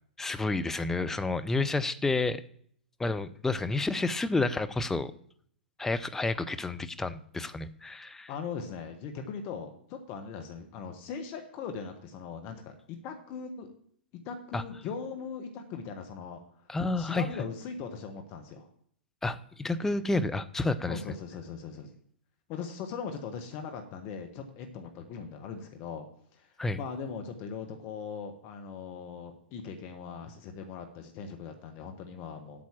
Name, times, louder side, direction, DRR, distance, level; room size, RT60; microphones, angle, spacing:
voice 1, 0.2-2.4 3.0-5.1 5.8-8.3 14.5-14.6 16.7-17.2 19.2-21.0 26.6-26.8, left 3 dB, 5° left, 11 dB, 0.5 m, -30 dB
voice 2, 8.3-13.7 14.2-16.7 17.0-18.7 20.9-21.9 22.5-26.0 26.3-32.6, left 6 dB, 40° left, 5 dB, 1.2 m, -40 dB
8.6 x 6.0 x 7.2 m, 0.63 s
figure-of-eight pair, 110°, 6 cm